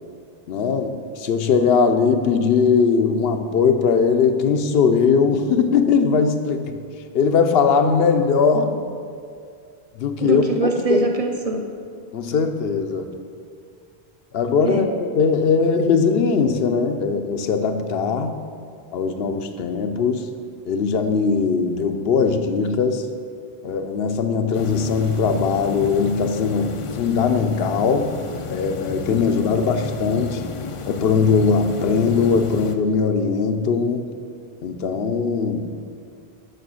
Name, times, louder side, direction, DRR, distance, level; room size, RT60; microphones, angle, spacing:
voice 1, 0.5-6.8 7.1-8.8 10.0-11.1 12.1-13.1 14.3-18.3 18.9-20.3 20.7-23.1 23.6-28.2 28.5-30.4 30.9-34.1 34.6-35.7, left 5 dB, 75° left, 8 dB, 0.9 m, -20 dB
voice 2, 10.2-11.6 14.6-14.9, right 2 dB, 40° right, 3 dB, 0.8 m, -23 dB
sound 1, 24.5-32.8, left 5 dB, 45° left, 0.4 m, -33 dB
6.7 x 6.4 x 6.3 m, 2.3 s
omnidirectional pair, 1.0 m